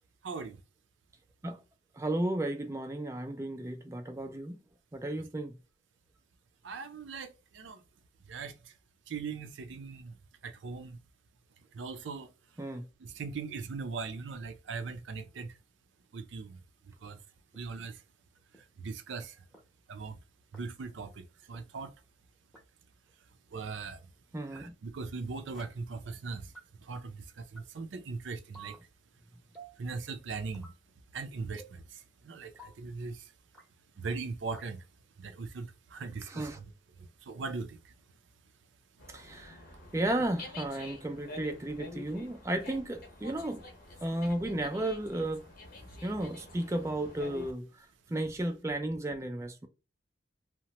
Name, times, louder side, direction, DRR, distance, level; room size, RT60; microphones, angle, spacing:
voice 1, 0.2-0.6 6.6-7.8 8.3-8.7 9.1-10.1 10.4-11.0 11.7-12.3 13.0-15.5 16.1-16.6 17.0-17.2 17.5-18.0 18.8-19.4 19.9-20.2 20.5-21.9 23.5-24.0 24.5-26.5 26.8-28.8 29.8-30.7 31.1-33.3 34.0-34.8 35.2-36.6 37.0-37.8, right 4 dB, 80° right, 0.5 m, -40 dB
voice 2, 2.0-4.6 4.9-5.6 12.6-12.9 24.3-24.7 36.3-36.6 39.1-39.6 39.9-43.6 44.0-45.4 46.0-47.9 48.1-49.7, right 1 dB, 15° right, 0.3 m, -34 dB
sound 1, 17.5-17.6 18.5-18.6 19.5-19.6 20.5-20.6 21.5-21.6 22.5-22.6 23.5-23.6 24.5-24.6 25.5-25.6 26.5-26.6 27.5-27.6 28.5-28.8 29.5-29.8 30.5-30.8 31.5-31.8 32.5-32.7 33.5-33.7 34.5-34.7, right 3 dB, ahead, 0.7 m, -50 dB
Dog, 39.0-47.5, left 2 dB, 55° left, 0.8 m, -48 dB
2.8 x 2.1 x 2.9 m
head